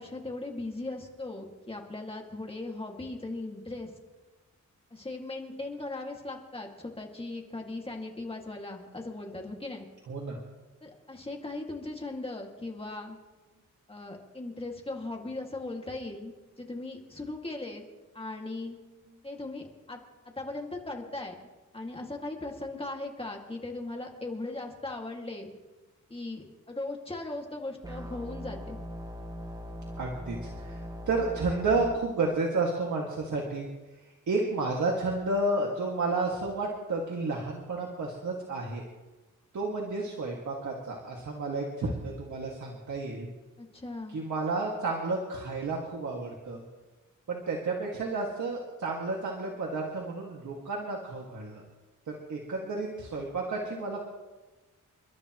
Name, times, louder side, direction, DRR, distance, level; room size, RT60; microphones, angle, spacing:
voice 1, 0.0-3.9 4.9-9.9 10.8-13.2 13.9-16.3 16.6-17.8 18.1-18.8 19.2-20.0 20.4-21.3 21.7-25.5 26.1-28.8 43.6-44.2, left 2 dB, 20° left, 1 dB, 2.2 m, -38 dB
voice 2, 10.1-10.4 30.0-33.7 34.3-38.8 39.5-43.3 44.1-46.6 47.3-51.6 52.1-54.1, right 3 dB, 65° right, -2 dB, 2.2 m, -31 dB
sound 1, 27.8-31.9, equal, 10° right, 0.9 m, -40 dB
29.5 x 12.5 x 3.1 m, 1.2 s
wide cardioid pair, 160°, 31 cm